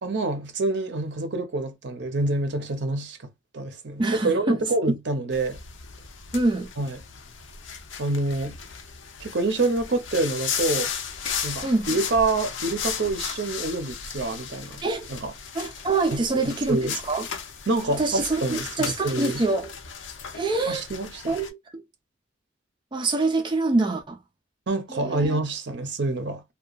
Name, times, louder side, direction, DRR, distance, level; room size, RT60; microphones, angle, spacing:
voice 1, 0.0-3.2 3.5-5.6 6.8-7.0 8.0-8.6 9.2-10.9 11.4-14.8 15.1-15.3 16.1-16.9 17.7-19.4 20.7-21.4 24.7-26.4, right 2 dB, 65° right, 0.6 m, -27 dB
voice 2, 4.0-4.6 6.3-6.7 11.6-11.9 14.8-15.1 15.5-17.3 18.0-19.7 20.3-20.8 21.3-21.8 22.9-24.2 24.9-25.4, right 3 dB, 25° right, 0.4 m, -25 dB
sound 1, 5.3-21.5, left 7 dB, 85° left, 0.5 m, -35 dB
2.8 x 2.2 x 2.3 m
head